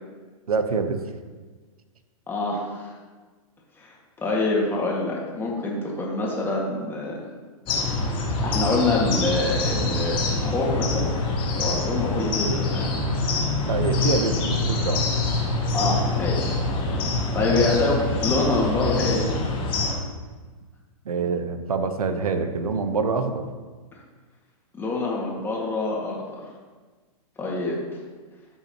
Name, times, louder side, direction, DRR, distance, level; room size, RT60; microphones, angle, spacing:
voice 1, 0.5-1.0 13.6-15.1 21.0-23.4, right 4 dB, 90° right, 8 dB, 1.0 m, -25 dB
voice 2, 2.3-2.9 3.8-7.2 8.4-11.1 11.6-13.0 13.9-14.2 15.7-16.5 17.3-19.3 24.7-26.4 27.4-27.8, left 2 dB, 10° left, -3 dB, 1.9 m, -26 dB
sound 1, 7.7-19.9, left 3 dB, 30° left, 1.8 m, -25 dB
13.5 x 5.7 x 3.0 m, 1.4 s
hypercardioid pair, 130°, 18 cm